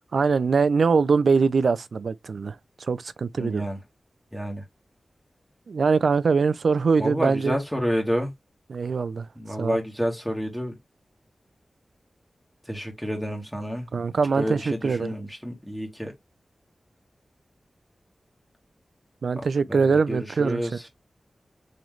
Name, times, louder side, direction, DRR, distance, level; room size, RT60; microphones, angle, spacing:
voice 1, 0.1-2.6 2.8-3.7 5.7-7.6 8.7-9.3 9.6-9.8 13.9-15.1 19.2-20.9, right 5 dB, 80° right, 0.3 m, -23 dB
voice 2, 3.4-3.8 4.3-4.6 7.0-8.3 9.4-10.7 12.7-13.8 14.4-16.1 19.7-20.7, equal, 5° left, 1.5 m, -29 dB
3.8 x 3.0 x 3.1 m
wide cardioid pair, 65°, 0 cm